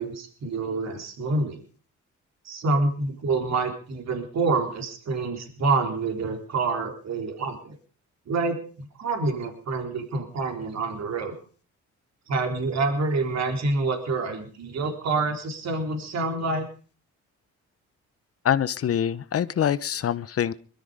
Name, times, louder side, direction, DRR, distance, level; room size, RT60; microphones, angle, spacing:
voice 1, 0.0-1.6 2.4-7.8 8.3-11.3 12.3-16.7, right 3 dB, 60° right, 4 dB, 3.9 m, -27 dB
voice 2, 18.4-20.5, left 9 dB, 50° left, 16 dB, 0.9 m, -25 dB
21.5 x 13.0 x 5.0 m, 0.41 s
cardioid pair, 90°, 30 cm